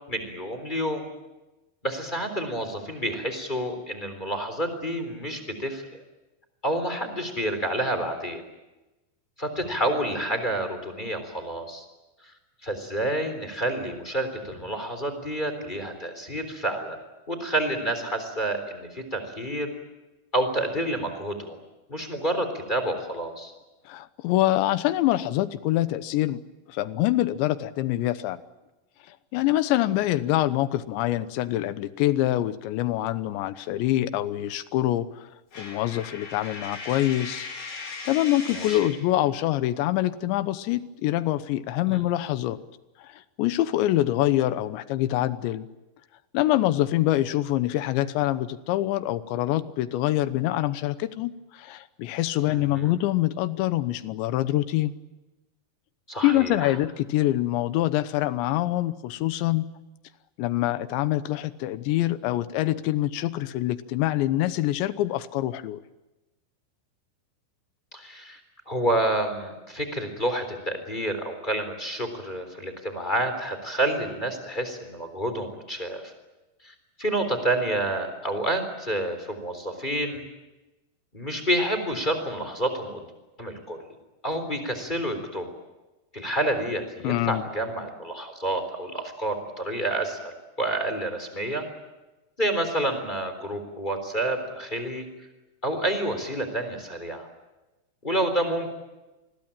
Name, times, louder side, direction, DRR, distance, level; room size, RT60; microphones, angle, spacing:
voice 1, 0.1-1.0 1.8-5.8 6.6-8.4 9.4-11.8 12.6-17.0 17.3-19.7 20.3-21.6 21.9-23.5 38.5-39.0 41.9-42.0 52.5-53.0 56.1-56.7 67.9-68.4 68.7-76.1 76.6-80.2 81.1-83.0 83.4-83.8 84.2-85.5 86.1-91.6 92.4-95.1 95.6-97.3 98.0-98.7, right 1 dB, 10° left, 7 dB, 3.1 m, -29 dB
voice 2, 23.9-26.4 26.7-28.4 29.1-35.1 35.6-37.5 38.1-42.6 43.0-45.7 46.3-54.9 56.2-59.7 60.4-65.8 87.0-87.4, left 14 dB, 80° left, 14 dB, 3.2 m, -25 dB
Coin (dropping), 35.5-39.0, left 4 dB, 55° left, 6.0 m, -38 dB
27.5 x 21.5 x 8.9 m, 1.1 s
omnidirectional pair, 5.2 m